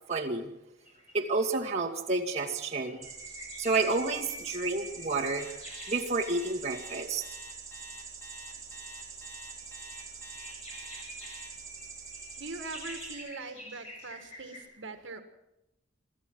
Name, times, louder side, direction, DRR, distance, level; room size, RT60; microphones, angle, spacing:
voice 1, 0.1-0.5 1.1-3.1 3.6-5.5 5.9-7.2, right 3 dB, 35° right, -2 dB, 2.3 m, -30 dB
sound 1, 0.8-1.8 2.4-6.6 7.0-7.6 8.4-14.6, equal, 30° left, 7.7 m, -48 dB
sound 2, 3.0-13.1, right 6 dB, 15° right, 3.8 m, -46 dB
Alarm, 5.4-11.5, equal, 10° left, 4.1 m, -48 dB
voice 2, 12.4-15.2, right 3 dB, 70° right, 7 dB, 1.8 m, -42 dB
26.0 x 13.0 x 7.9 m, 0.92 s
head